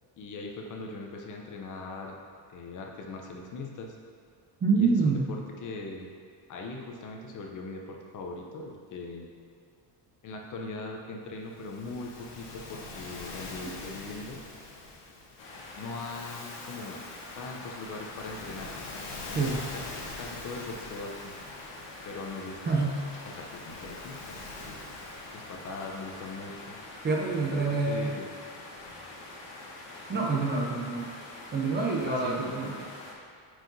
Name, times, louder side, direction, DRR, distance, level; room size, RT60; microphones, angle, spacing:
voice 1, 0.2-2.2 2.5-4.0 4.7-6.1 6.5-9.3 10.2-14.4 15.7-17.0 17.4-18.9 19.7-21.3 22.0-23.0 23.2-24.4 24.7-24.8 25.3-26.8 27.3-28.3 30.1-30.5 32.1-32.7, left 3 dB, 45° left, 1 dB, 0.7 m, -40 dB
voice 2, 4.6-5.3 19.3-19.6 22.7-22.9 27.0-28.1 30.1-31.1 31.5-32.7, right 4 dB, 25° right, -2 dB, 0.5 m, -26 dB
Waves surf, 11.5-27.0, left 3 dB, 70° left, 1.2 m, -45 dB
sound 1, 15.4-33.1, left 2 dB, 85° left, 1.2 m, -45 dB
7.6 x 4.8 x 2.7 m, 2.3 s
cardioid pair, 145°, 44 cm